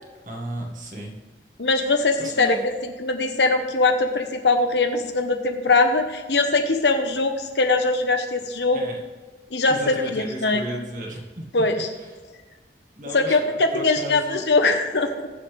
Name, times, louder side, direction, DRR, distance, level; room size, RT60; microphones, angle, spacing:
voice 1, 0.2-1.2 2.2-2.7 8.7-9.0 9.7-11.5 11.9-12.2 12.9-14.5, right 1 dB, 45° right, 0 dB, 1.9 m, -34 dB
voice 2, 1.6-2.6 2.8-8.8 9.5-10.6 11.5-11.9 13.1-15.3, left 3 dB, 80° left, 6 dB, 1.2 m, -21 dB
20.0 x 7.1 x 3.5 m, 1.3 s
head